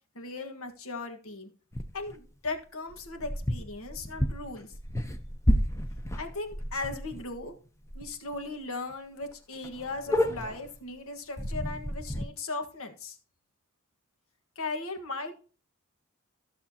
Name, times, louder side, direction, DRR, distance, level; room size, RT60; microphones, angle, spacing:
voice 1, 0.1-1.5 1.9-4.7 6.2-7.5 7.9-13.2 14.5-15.4, left 3 dB, 75° left, 5 dB, 1.5 m, -37 dB
sound 1, 1.7-2.2 2.9-7.4 7.8-8.1 8.3-8.4 8.9-9.0 9.2-9.3 9.6-10.8 11.4-12.2, equal, 15° left, 0.7 m, -31 dB
14.5 x 6.8 x 2.9 m, 0.38 s
head